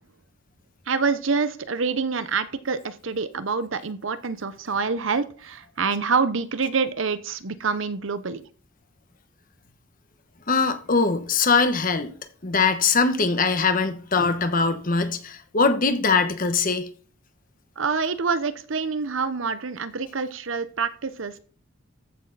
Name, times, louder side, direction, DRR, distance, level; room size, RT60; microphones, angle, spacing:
voice 1, 0.9-8.4 17.8-21.4, right 5 dB, 70° right, 0.9 m, -26 dB
voice 2, 10.5-12.1 12.4-16.9, left 4 dB, 45° left, 1.2 m, -22 dB
14.0 x 6.6 x 4.1 m
head